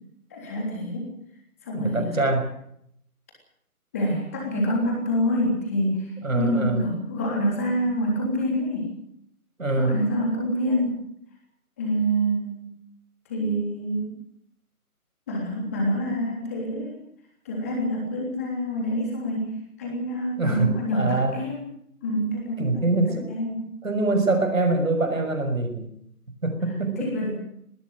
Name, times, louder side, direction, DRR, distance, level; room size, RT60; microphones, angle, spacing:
voice 1, 0.3-1.1 1.6-2.2 3.9-6.1 6.4-8.9 9.8-10.9 11.8-12.7 13.3-14.2 15.3-17.0 17.4-21.7 22.0-23.0 23.3-23.7 27.0-27.3, equal, 10° left, -1 dB, 3.3 m, -26 dB
voice 2, 1.7-2.5 6.2-6.8 9.6-10.0 20.4-21.4 22.6-23.3 23.8-25.9 26.4-27.3, right 2 dB, 60° right, 6 dB, 6.1 m, -24 dB
20.0 x 17.0 x 9.3 m, 0.72 s
figure-of-eight pair, 175°, 45 cm